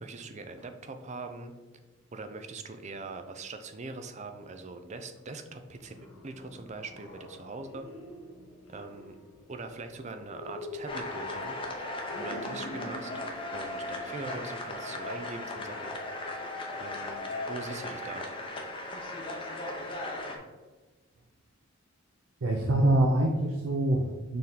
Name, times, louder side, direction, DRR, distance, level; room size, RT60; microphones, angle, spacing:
voice 1, 0.0-1.5 2.1-7.9 8.7-9.2 9.5-11.5 12.2-13.1 13.5-16.0 16.8-18.3, right 3 dB, 30° right, 7 dB, 0.5 m, -42 dB
sound 1, 5.6-15.3, left 1 dB, 65° left, 1.0 m, -46 dB
sound 2, 10.9-20.4, left 2 dB, 25° left, 0.8 m, -37 dB
voice 2, 22.4-24.4, right 1 dB, 70° right, 2 dB, 0.6 m, -25 dB
6.6 x 3.6 x 4.1 m, 1.3 s
head